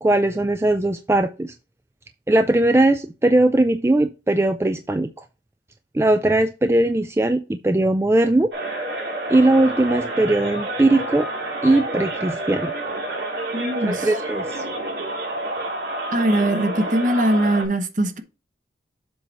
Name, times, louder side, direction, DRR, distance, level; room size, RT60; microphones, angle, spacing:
voice 1, 0.0-1.5 2.3-5.1 5.9-8.5 9.3-11.3 11.6-12.7 13.8-14.6, right 2 dB, 15° right, 0.3 m, -19 dB
sound 1, 8.5-17.7, right 1 dB, 70° right, 2.5 m, -29 dB
voice 2, 13.5-14.1 16.1-18.2, right 1 dB, 45° right, 1.0 m, -21 dB
7.6 x 4.0 x 4.4 m
head